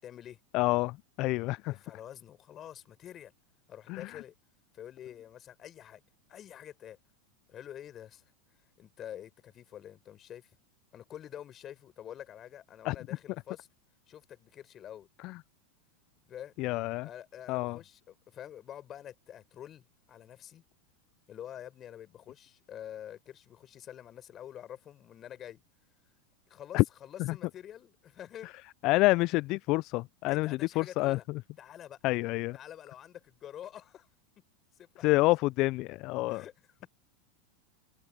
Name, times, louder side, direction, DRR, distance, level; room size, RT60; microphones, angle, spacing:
voice 1, 0.0-0.4 1.7-3.3 3.7-4.3 4.7-6.0 6.3-7.0 7.5-8.3 8.8-10.5 10.9-13.7 14.1-15.1 16.3-16.5 17.0-20.6 21.3-25.6 26.5-28.5 30.3-31.2 31.6-32.0 32.5-34.1 34.8-35.3 36.3-36.9, left 10 dB, 35° left, 5.3 m, -47 dB
voice 2, 0.5-1.7 3.9-4.2 12.8-13.0 15.2-15.4 16.6-17.1 17.5-17.8 26.7-26.8 27.3-27.4 28.8-31.4 32.0-32.6 35.0-36.4, left 21 dB, 50° left, 0.3 m, -28 dB
hypercardioid pair, 100°, 0 cm